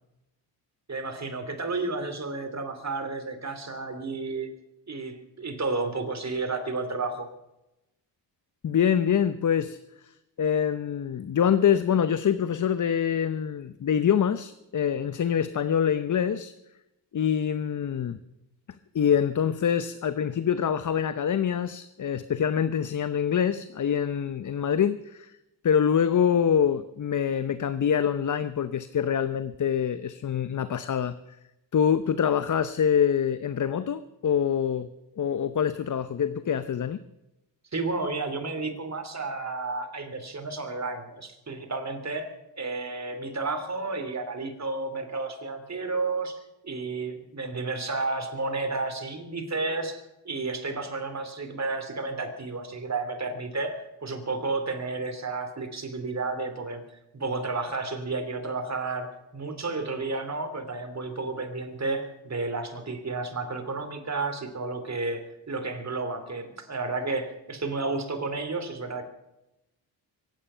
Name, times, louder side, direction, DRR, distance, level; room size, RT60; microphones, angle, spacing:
voice 1, 0.9-4.5 4.9-7.3 37.7-56.9 57.1-69.0, right 3 dB, 35° right, 7 dB, 3.0 m, -32 dB
voice 2, 8.6-16.5 17.1-18.2 18.9-25.3 25.6-31.1 31.7-34.9 35.2-37.0, left 8 dB, 45° left, 13 dB, 0.7 m, -25 dB
23.5 x 9.4 x 5.6 m, 0.93 s
cardioid pair, 70°, 44 cm